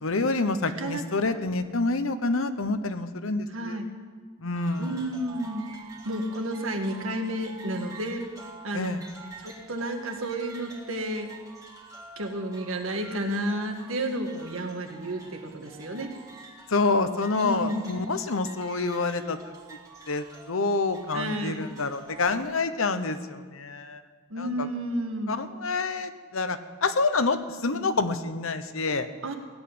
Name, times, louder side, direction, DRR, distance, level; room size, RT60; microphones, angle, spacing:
voice 1, 0.0-3.8 4.4-5.1 8.7-9.0 16.7-19.4 20.1-24.0 24.4-24.7 25.3-29.1, left 3 dB, 70° left, 11 dB, 1.0 m, -27 dB
voice 2, 0.6-1.4 3.5-3.9 4.8-5.7 6.1-8.3 8.6-8.9 9.4-11.3 12.2-16.1 17.4-17.9 21.1-21.7 24.3-25.4 27.7-27.9 29.2-29.4, right 1 dB, 70° right, 4 dB, 1.8 m, -31 dB
sound 1, 4.6-22.4, right 3 dB, 15° right, 1.8 m, -47 dB
17.0 x 8.2 x 9.6 m, 1.5 s
head